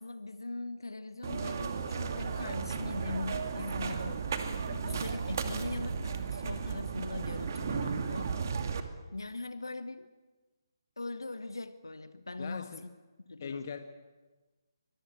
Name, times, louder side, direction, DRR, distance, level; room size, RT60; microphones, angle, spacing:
voice 1, 0.0-8.8 9.1-10.1 11.0-12.9 13.3-13.7, left 2 dB, 75° left, 12 dB, 1.3 m, -41 dB
sound 1, 1.2-8.8, right 5 dB, 50° right, 2.5 m, -34 dB
voice 2, 4.7-5.0 12.4-12.8 13.4-13.8, left 6 dB, 45° left, 7 dB, 1.6 m, -41 dB
24.5 x 23.5 x 8.7 m, 1.3 s
figure-of-eight pair, 140°, 2 cm